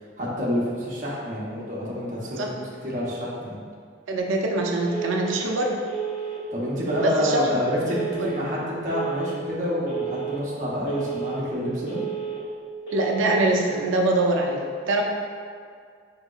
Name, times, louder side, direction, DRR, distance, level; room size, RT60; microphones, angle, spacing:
voice 1, 0.2-3.6 6.5-12.0, left 1 dB, 45° right, -6 dB, 0.8 m, -28 dB
voice 2, 4.1-5.8 7.0-7.6 8.2-8.3 12.9-15.0, right 2 dB, 90° right, 1 dB, 0.5 m, -24 dB
Telephone, 4.9-5.4 5.9-6.4 6.9-7.4 7.9-8.4 8.9-9.4 9.9-10.4 10.9-11.4 11.9-12.4 12.9-13.4, right 8 dB, 70° left, 1.3 m, -31 dB
4.2 x 2.8 x 2.3 m, 2.1 s
head